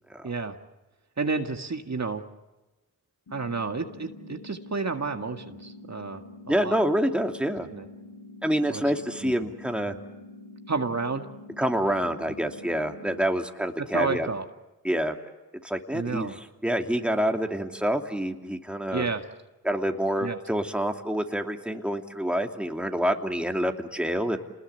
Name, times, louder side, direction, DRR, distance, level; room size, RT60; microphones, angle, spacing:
voice 1, 0.2-0.6 1.2-2.2 3.3-6.8 7.7-7.9 8.7-8.8 9.2-9.3 10.7-11.3 13.9-14.5 15.9-16.4 18.9-19.2 20.2-20.4, right 4 dB, 50° right, 5 dB, 2.0 m, -30 dB
sound 1, 3.3-13.3, left 2 dB, 80° left, 3.3 m, -46 dB
voice 2, 6.5-7.7 8.4-9.9 11.6-14.3 14.8-15.1 15.6-16.3 16.6-19.1 19.6-24.4, equal, 5° right, 4 dB, 2.8 m, -27 dB
28.5 x 20.5 x 8.2 m, 1.1 s
cardioid pair, 45°, 36 cm